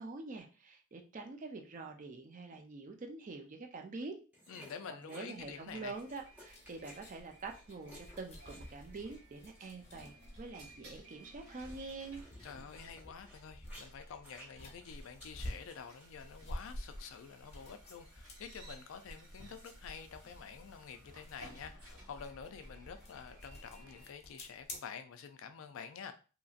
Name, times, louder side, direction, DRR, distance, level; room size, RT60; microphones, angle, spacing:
voice 1, 0.0-4.2 5.1-12.2, right 3 dB, 35° right, 4 dB, 0.4 m, -46 dB
sound 1, 4.3-10.0 11.0-16.2 16.5-16.8 19.5-19.7, equal, 10° right, 0.7 m, -58 dB
voice 2, 4.5-6.0 12.4-26.1, left 6 dB, 60° left, 8 dB, 0.3 m, -48 dB
sound 2, 5.4-24.1, right 1 dB, 80° right, 1.3 m, -60 dB
sound 3, 5.9-24.8, left 1 dB, 30° left, 0.7 m, -51 dB
2.8 x 2.6 x 2.4 m, 0.35 s
head